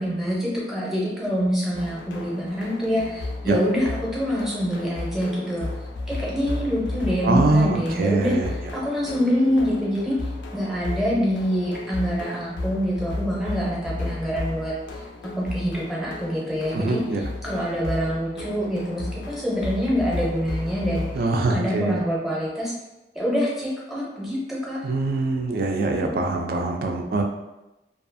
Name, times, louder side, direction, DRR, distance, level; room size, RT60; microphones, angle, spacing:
voice 1, 0.0-5.7 6.1-8.3 8.7-10.2 10.5-15.0 15.4-21.1 21.5-22.7 23.1-24.8, equal, ahead, -6 dB, 0.6 m, -25 dB
sound 1, 1.7-21.2, left 2 dB, 85° left, 0.4 m, -34 dB
voice 2, 7.2-8.5 16.7-17.2 21.1-22.0 24.8-27.2, right 2 dB, 55° right, 3 dB, 0.3 m, -23 dB
2.4 x 2.4 x 2.5 m, 0.99 s
head